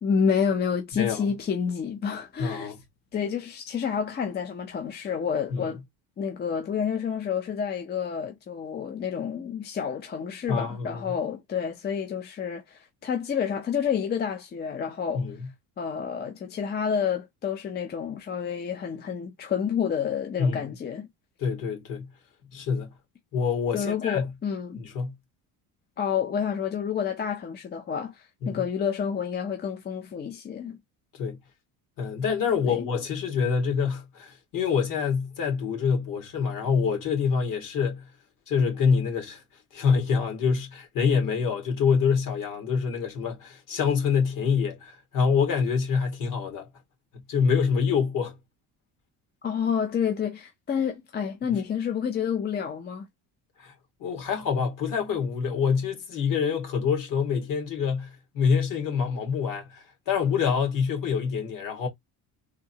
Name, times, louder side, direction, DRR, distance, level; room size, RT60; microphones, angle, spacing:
voice 1, 0.0-2.7 3.1-5.8 6.2-15.2 15.8-21.1 23.7-24.8 26.0-30.8 32.7-32.9 49.4-53.0, left 7 dB, 25° left, 0.6 m, -29 dB
voice 2, 2.4-2.8 5.5-5.7 10.5-11.1 15.1-15.4 20.4-20.6 21.4-22.1 22.5-22.9 23.3-24.3 24.8-25.1 28.4-28.6 31.1-31.4 32.0-38.0 38.5-39.4 39.7-46.7 47.3-48.3 53.6-53.7 54.0-61.9, left 6 dB, 55° left, 1.9 m, -26 dB
3.6 x 2.7 x 2.7 m
cardioid pair, 135°, 39 cm